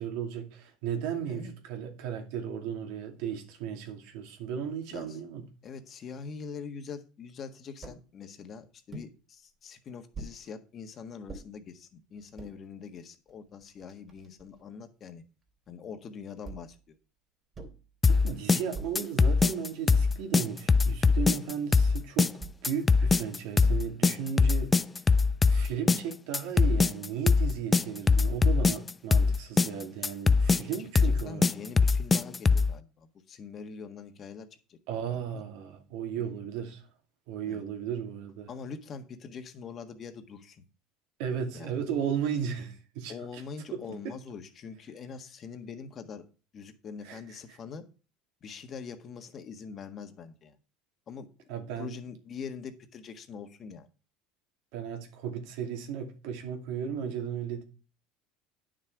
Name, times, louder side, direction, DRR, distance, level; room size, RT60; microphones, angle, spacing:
voice 1, 0.0-5.5 18.1-22.3 22.6-24.7 25.4-31.5 34.9-36.8 37.3-38.5 41.2-43.4 43.7-44.1 47.0-47.6 51.5-52.0 54.7-57.6, right 8 dB, 75° right, 2.4 m, -35 dB
voice 2, 5.6-15.2 15.7-17.0 31.0-34.8 35.1-35.4 36.2-36.4 37.5-37.6 38.5-40.6 41.5-41.8 43.1-46.2 46.5-47.8 48.4-50.5 51.1-51.3 51.8-53.9, left 6 dB, 40° left, 1.5 m, -43 dB
sound 1, 7.8-8.0 8.9-9.1 10.1-10.4 11.3-11.5 12.2-12.5 13.3-13.4 13.6-14.6 16.4-16.8 17.5-17.9 18.7-19.1 19.9-20.2 21.0-21.4 22.4-22.6 23.6-24.0, right 3 dB, 30° right, 3.1 m, -44 dB
sound 2, 18.0-32.7, left 4 dB, 20° left, 0.4 m, -22 dB
9.5 x 6.4 x 4.7 m
supercardioid pair, 115°, 0 cm